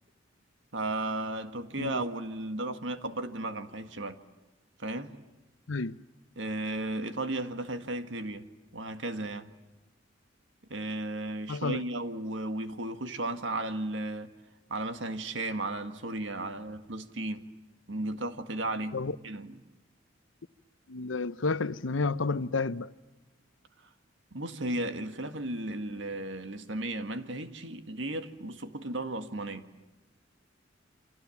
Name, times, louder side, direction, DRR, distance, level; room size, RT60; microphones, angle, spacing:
voice 1, 0.7-4.2 4.8-5.1 6.4-8.5 8.7-9.5 10.7-14.3 14.7-17.5 17.9-19.0 19.2-19.6 24.3-29.7, right 2 dB, 70° right, 1.9 m, -35 dB
voice 2, 11.5-11.8 18.9-19.1 20.9-22.9, left 3 dB, 85° left, 0.8 m, -30 dB
29.0 x 27.0 x 7.2 m
head